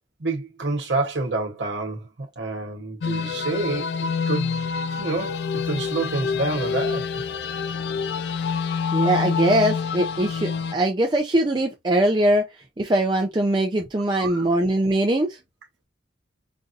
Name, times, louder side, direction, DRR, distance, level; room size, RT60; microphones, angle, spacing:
voice 1, 0.2-2.0 2.4-4.7 5.0-7.0 14.2-14.5, right 2 dB, 70° right, 1.0 m, -28 dB
sound 1, 3.0-10.7, left 5 dB, 60° left, 0.3 m, -27 dB
voice 2, 8.9-12.5 12.8-15.4, right 1 dB, 25° right, 0.5 m, -21 dB
5.2 x 2.6 x 2.5 m
head